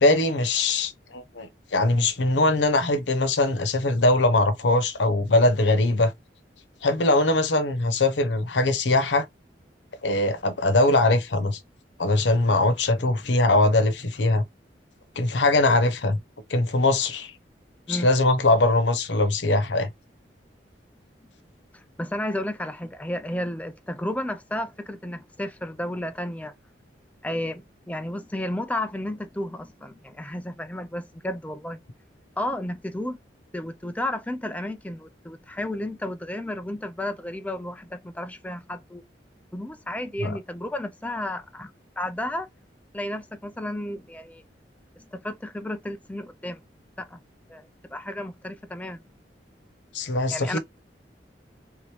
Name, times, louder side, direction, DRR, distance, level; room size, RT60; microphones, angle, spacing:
voice 1, 0.0-6.1 6.8-9.2 10.0-11.6 12.0-14.4 15.2-16.2 16.5-17.3 17.9-19.9 40.2-40.4 49.9-50.6, left 2 dB, 90° left, 0.9 m, -21 dB
voice 2, 21.7-26.5 27.2-31.8 32.4-33.2 33.5-39.0 39.5-41.7 42.0-42.5 42.9-44.4 45.0-46.6 47.0-47.2 47.5-49.0 50.3-50.6, left 1 dB, 10° left, 0.5 m, -32 dB
3.6 x 3.0 x 3.4 m
head